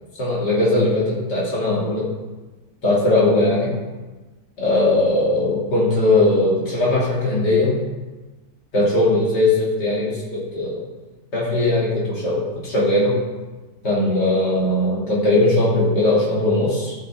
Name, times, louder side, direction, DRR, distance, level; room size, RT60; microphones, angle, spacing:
voice 1, 0.2-2.1 2.8-3.7 4.6-7.8 8.7-10.8 11.3-13.2 13.8-17.0, left 2 dB, 75° left, -7 dB, 3.5 m, -19 dB
13.5 x 5.8 x 3.8 m, 1.2 s
omnidirectional pair, 1.8 m